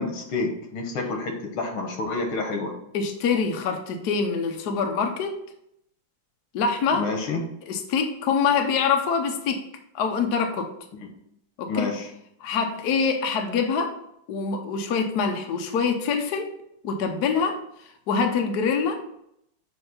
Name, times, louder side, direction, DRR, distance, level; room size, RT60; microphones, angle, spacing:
voice 1, 0.0-2.7 6.9-7.4 11.7-12.1, left 3 dB, 85° left, 3 dB, 2.1 m, -28 dB
voice 2, 2.9-5.4 6.5-7.1 7.7-9.6 9.9-10.7 11.6-11.9 12.4-13.9 14.3-16.5 16.8-17.6 18.1-19.0, left 5 dB, 65° left, 4 dB, 1.2 m, -25 dB
7.8 x 2.8 x 5.4 m, 0.76 s
omnidirectional pair, 2.2 m